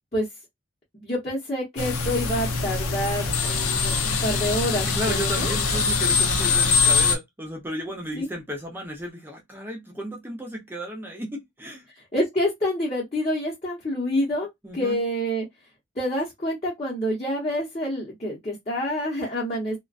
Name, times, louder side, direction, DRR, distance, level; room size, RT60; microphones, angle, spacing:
voice 1, 0.9-5.5 8.1-8.3 12.1-14.5 14.7-15.5 16.0-19.8, equal, 30° left, 0.8 m, -27 dB
sound 1, 1.8-7.2, left 4 dB, 80° left, 0.6 m, -23 dB
voice 2, 4.8-11.9 14.6-15.0, equal, 10° right, 0.5 m, -33 dB
2.4 x 2.2 x 2.4 m
head